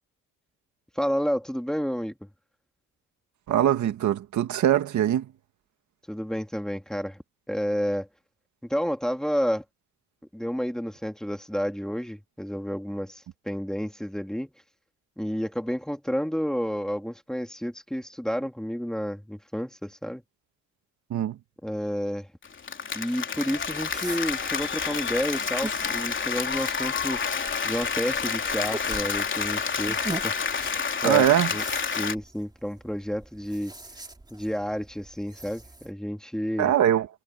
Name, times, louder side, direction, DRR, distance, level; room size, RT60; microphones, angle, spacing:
voice 1, 1.0-2.1 6.1-7.2 7.5-8.1 8.6-9.6 10.3-14.5 15.2-20.2 21.6-22.3 22.9-27.3 27.6-30.6 31.0-31.6 32.0-33.7 34.3-36.7, equal, ahead, 2.9 m, -30 dB
voice 2, 3.5-5.3 21.1-21.4 31.0-31.5 36.6-37.1, right 11 dB, 70° right, 2.2 m, -22 dB
Applause, 22.4-32.1, left 6 dB, 40° left, 3.7 m, -29 dB
sound 1, 23.5-35.9, right 2 dB, 15° right, 3.2 m, -42 dB
cardioid pair, 90°, 30 cm